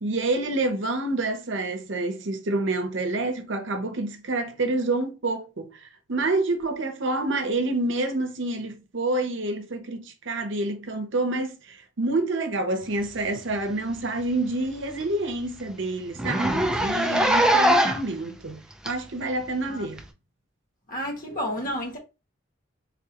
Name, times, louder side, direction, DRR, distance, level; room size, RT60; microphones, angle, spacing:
voice 1, 0.0-18.6 18.8-20.0, right 2 dB, 70° right, 0.8 m, -28 dB
Zipper (clothing), 13.5-13.7 14.1-14.2 14.5-14.6 15.0-15.1 15.3-15.5 16.1-18.1 18.9-19.0 20.0-20.1, right 1 dB, 5° right, 0.5 m, -22 dB
voice 2, 20.9-22.0, equal, 45° left, 1.4 m, -31 dB
3.7 x 3.6 x 2.9 m
head